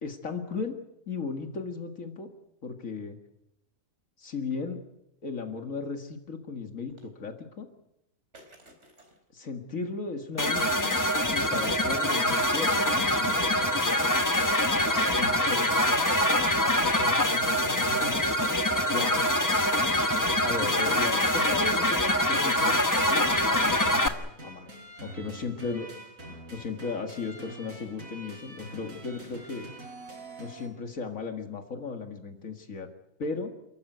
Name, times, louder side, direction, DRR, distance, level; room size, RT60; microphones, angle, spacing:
voice 1, 0.0-0.8 1.1-2.3 2.6-3.2 4.2-4.8 5.2-7.7 9.3-10.9 11.3-13.6 15.2-15.8 18.9-19.3 20.4-24.1 24.4-24.7 25.0-25.9 26.3-29.7 30.4-32.9 33.2-33.5, left 4 dB, 75° left, 5 dB, 2.3 m, -36 dB
sound 1, 6.9-7.1 8.3-9.2 11.4-13.5 14.9-15.7 18.0-20.4, right 2 dB, 55° right, 4.3 m, -50 dB
sound 2, 10.4-24.1, left 1 dB, 15° left, 1.1 m, -24 dB
sound 3, 11.6-30.7, right 2 dB, 75° right, 5.7 m, -45 dB
voice 2, 14.3-14.7 15.4-18.2 25.6-25.8, equal, 30° left, 2 dB, 4.2 m, -45 dB
29.0 x 14.5 x 9.3 m, 0.87 s
omnidirectional pair, 1.4 m